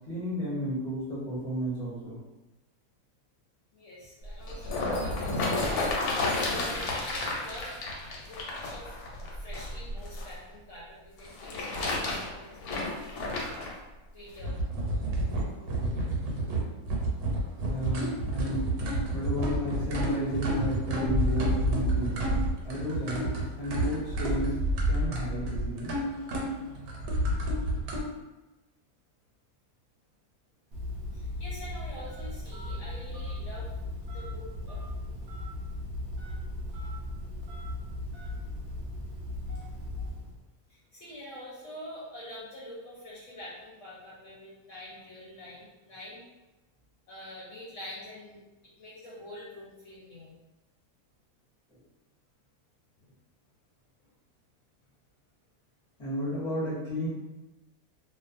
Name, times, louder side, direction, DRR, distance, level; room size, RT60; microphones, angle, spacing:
voice 1, 0.0-2.2 17.6-18.7 19.1-22.3 22.6-24.6 24.9-25.9 40.0-40.1 51.7-51.8 56.0-57.1, equal, 30° left, -7 dB, 0.7 m, -33 dB
voice 2, 3.7-5.9 6.4-7.7 8.2-13.3 14.1-14.6 14.9-16.1 31.1-33.7 34.1-34.8 40.7-46.2 47.1-50.3 53.0-53.1, left 1 dB, 65° left, -7 dB, 0.9 m, -46 dB
sound 1, 4.2-10.3 11.2-13.7 14.4-14.5, left 2 dB, 90° left, 1.1 m, -31 dB
sound 2, 14.4-28.0, right 1 dB, 85° right, 1.1 m, -29 dB
Telephone, 30.7-40.4, left 1 dB, 65° right, 0.7 m, -37 dB
2.4 x 2.3 x 2.4 m, 1.1 s
omnidirectional pair, 1.6 m